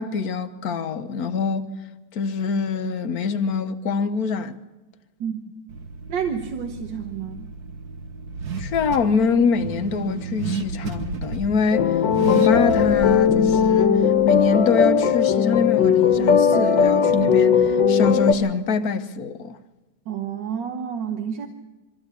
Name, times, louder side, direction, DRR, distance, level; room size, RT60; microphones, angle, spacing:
voice 1, 0.0-1.7 2.1-4.5 8.6-14.0 14.2-19.6, left 5 dB, 60° left, 1.5 m, -24 dB
voice 2, 5.2-5.5 6.1-7.5 20.1-21.5, right 7 dB, 80° right, 1.8 m, -29 dB
Car / Accelerating revving vroom, 5.7-14.9, right 4 dB, 60° right, 1.9 m, -33 dB
sound 1, 11.7-18.3, left 7 dB, 85° left, 1.9 m, -18 dB
23.0 x 14.5 x 8.3 m
omnidirectional pair, 1.9 m